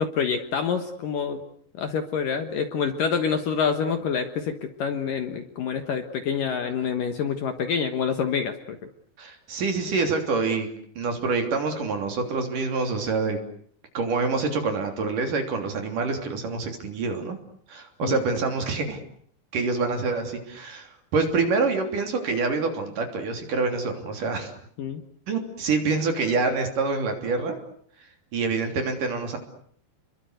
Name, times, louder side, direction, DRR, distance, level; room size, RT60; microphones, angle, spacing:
voice 1, 0.0-1.4 1.8-8.8 18.0-18.2 24.8-25.0, left 6 dB, 60° left, 8 dB, 2.6 m, -27 dB
voice 2, 9.2-10.7 11.0-13.4 13.9-17.4 17.7-19.0 19.5-24.6 25.3-27.6 28.3-29.4, right 4 dB, 50° right, 5 dB, 4.5 m, -26 dB
30.0 x 23.0 x 8.0 m, 0.62 s
omnidirectional pair, 5.2 m